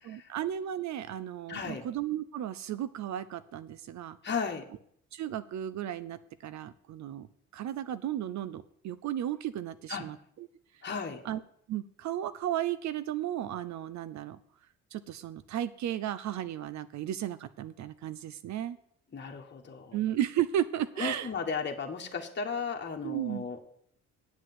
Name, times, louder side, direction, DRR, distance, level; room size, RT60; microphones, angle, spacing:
voice 1, 0.0-4.2 5.1-7.3 7.5-10.5 11.2-11.4 11.7-14.4 14.9-18.8 19.9-21.3 23.0-23.4, right 11 dB, 65° right, 14 dB, 0.6 m, -34 dB
voice 2, 1.5-1.8 4.2-4.7 9.9-10.0 10.8-11.2 19.1-20.0 21.0-23.6, left 5 dB, 35° left, 2 dB, 1.5 m, -35 dB
8.3 x 7.6 x 7.7 m, 0.68 s
cardioid pair, 90°, 30 cm